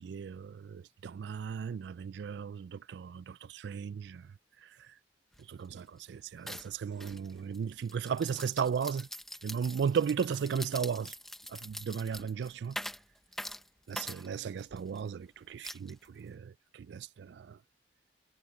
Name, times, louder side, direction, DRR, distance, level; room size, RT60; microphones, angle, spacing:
voice 1, 0.0-4.3 4.6-4.9 5.5-9.1 9.4-11.1 11.5-12.8 13.9-17.6, right 6 dB, 70° right, 0.3 m, -35 dB
sound 1, 5.3-5.4 5.7-6.0 6.5-15.0 15.6-16.3, equal, ahead, 0.8 m, -44 dB
head